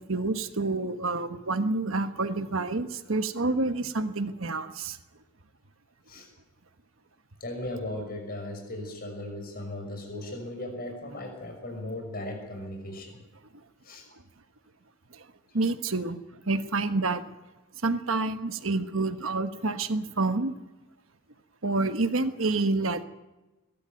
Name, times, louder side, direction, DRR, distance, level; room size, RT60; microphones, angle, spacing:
voice 1, 0.0-5.0 15.1-15.2 15.5-16.2 16.5-17.2 17.8-20.5 21.6-23.0, right 3 dB, 65° right, 9 dB, 1.3 m, -28 dB
voice 2, 7.4-13.2 13.8-14.1, left 1 dB, 45° left, 3 dB, 6.2 m, -37 dB
22.0 x 13.0 x 9.2 m, 1.1 s
head